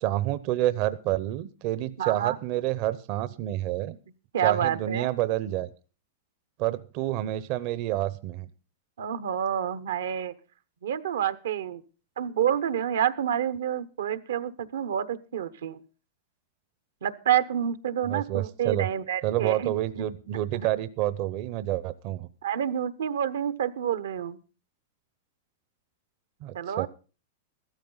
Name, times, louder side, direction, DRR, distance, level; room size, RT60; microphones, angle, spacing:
voice 1, 0.0-4.0 4.4-5.7 6.6-8.5 18.1-18.9 19.2-22.3 26.4-26.9, right 14 dB, 50° right, 15 dB, 0.7 m, -28 dB
voice 2, 2.0-2.4 4.3-5.1 9.0-10.3 10.8-11.8 12.2-15.8 17.0-19.7 20.0-20.1 22.4-24.4 26.5-26.9, right 9 dB, 85° right, 13 dB, 0.9 m, -28 dB
14.5 x 13.0 x 3.9 m, 0.35 s
hypercardioid pair, 130°, 0 cm